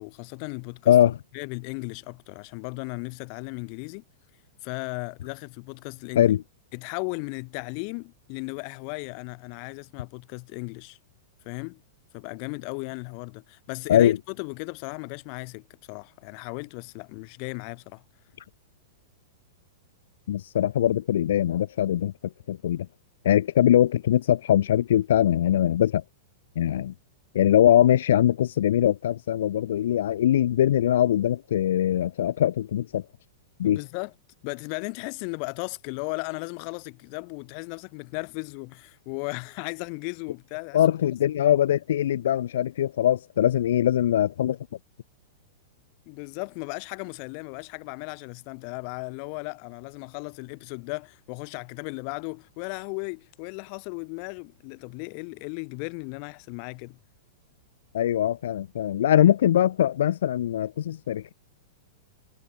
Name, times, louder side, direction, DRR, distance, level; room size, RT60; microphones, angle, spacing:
voice 1, 0.0-1.0 1.3-4.0 4.6-6.3 6.7-11.0 11.4-11.8 12.1-18.0 33.6-34.1 34.4-40.8 46.1-57.0, left 40 dB or more, 45° left, 0.8 m, -36 dB
voice 2, 0.9-1.2 6.2-6.4 13.9-14.2 20.3-22.1 22.5-22.9 23.2-26.0 26.6-26.9 27.3-33.0 33.6-33.8 40.7-44.6 57.9-61.3, left 11 dB, 75° left, 0.4 m, -22 dB
hypercardioid pair, 145°, 0 cm